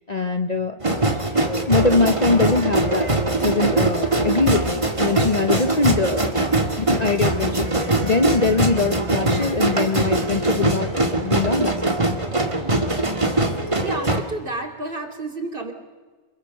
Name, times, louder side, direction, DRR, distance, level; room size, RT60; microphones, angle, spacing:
voice 1, 0.1-0.8 1.7-3.1 3.4-6.3 6.8-7.7 8.0-11.8, left 3 dB, 35° left, 7 dB, 1.0 m, -22 dB
sound 1, 0.8-14.2, right 2 dB, 25° right, 2.0 m, -22 dB
voice 2, 13.8-15.7, right 2 dB, 40° right, 7 dB, 3.1 m, -30 dB
27.5 x 21.5 x 6.7 m, 1.4 s
omnidirectional pair, 1.4 m